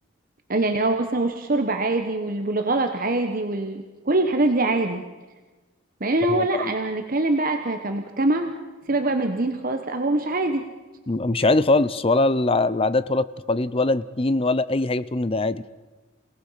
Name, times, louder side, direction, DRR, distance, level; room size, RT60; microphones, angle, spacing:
voice 1, 0.5-5.0 6.0-8.5 8.9-10.7, right 2 dB, 45° right, 6 dB, 1.2 m, -23 dB
voice 2, 6.3-6.7 11.1-15.6, left 2 dB, 30° left, 16 dB, 0.6 m, -22 dB
28.5 x 18.0 x 5.7 m, 1.2 s
head